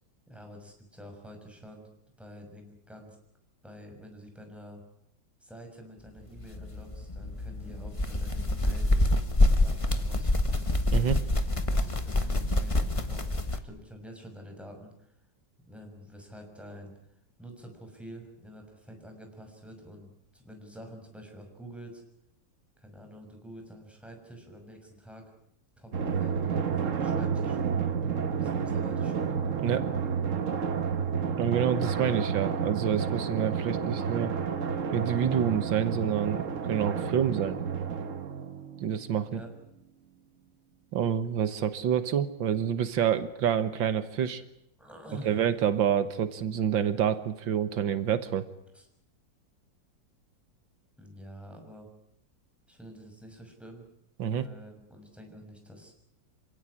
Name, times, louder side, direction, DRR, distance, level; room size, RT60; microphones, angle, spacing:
voice 1, 0.3-1.9 2.2-3.2 3.6-4.8 5.4-8.9 9.5-10.7 11.5-15.2 15.7-16.9 17.4-22.0 22.8-25.3 25.8-27.6 28.4-29.3 39.3-39.5 44.8-45.5 48.7-48.9 51.0-51.9 52.7-53.8 54.3-55.9, equal, ahead, 3 dB, 6.2 m, -48 dB
sound 1, 6.4-13.6, left 1 dB, 20° left, 1.4 m, -26 dB
voice 2, 10.9-11.2 29.6-29.9 31.4-34.3 34.9-37.6 38.8-39.4 40.9-44.4 45.2-48.5 54.2-54.5, right 9 dB, 85° right, 12 dB, 1.9 m, -28 dB
Drum, 25.9-39.0, right 6 dB, 50° right, 1.4 m, -30 dB
27.5 x 17.5 x 9.9 m, 0.76 s
omnidirectional pair, 2.0 m